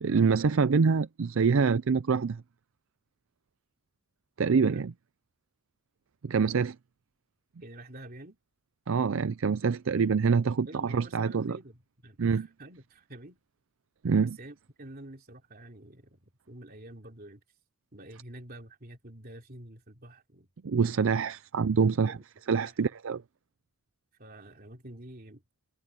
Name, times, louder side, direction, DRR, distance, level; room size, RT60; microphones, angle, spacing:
voice 1, 0.0-2.4 4.4-4.9 6.2-6.8 8.9-11.6 12.2-12.5 14.0-14.4 20.6-22.2 22.5-23.2, right 5 dB, 65° right, 0.5 m, -25 dB
voice 2, 4.5-4.8 7.6-8.4 10.7-13.4 14.2-17.4 17.9-20.5 21.6-22.2 22.6-22.8 24.2-25.4, right 1 dB, 45° right, 3.2 m, -48 dB
head